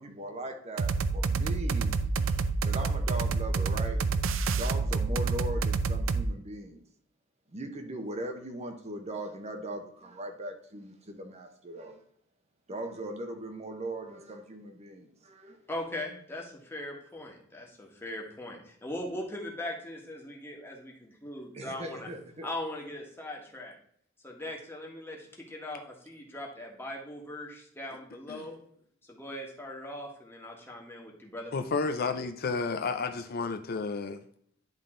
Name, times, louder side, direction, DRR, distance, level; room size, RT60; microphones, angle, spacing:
voice 1, 0.0-4.1 4.6-6.8 7.5-12.0 12.7-15.6 21.5-22.5, right 1 dB, 35° right, 0.8 m, -39 dB
sound 1, 0.8-6.3, right 4 dB, 80° right, 0.5 m, -28 dB
voice 2, 15.7-22.1 22.4-23.7 24.2-28.6 29.1-31.5, left 1 dB, 10° left, 1.5 m, -40 dB
voice 3, 31.5-34.2, left 4 dB, 50° left, 0.5 m, -31 dB
10.5 x 3.7 x 3.7 m
head